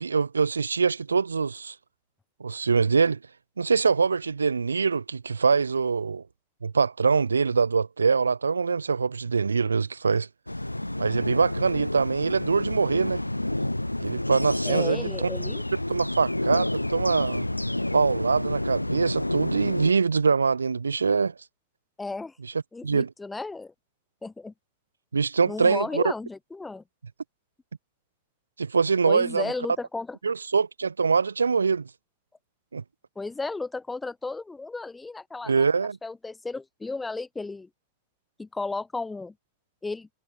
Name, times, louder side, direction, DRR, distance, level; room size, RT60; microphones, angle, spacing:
voice 1, 0.0-1.7 2.4-3.2 3.6-6.2 6.6-10.3 11.0-13.2 14.0-15.3 15.9-17.5 17.9-21.3 22.8-23.1 25.1-26.1 28.6-29.5 30.2-31.9 32.7-32.8 35.5-36.0, right 5 dB, 75° right, 0.8 m, -24 dB
sound 1, 10.5-19.9, left 1 dB, 85° left, 0.3 m, -29 dB
voice 2, 14.6-15.6 22.0-22.3 22.7-23.7 24.2-24.5 25.4-26.8 29.0-30.2 33.2-35.7 36.0-37.7 38.4-39.3 39.8-40.1, left 3 dB, 10° left, 0.8 m, -34 dB
figure-of-eight pair, 90°, 0 cm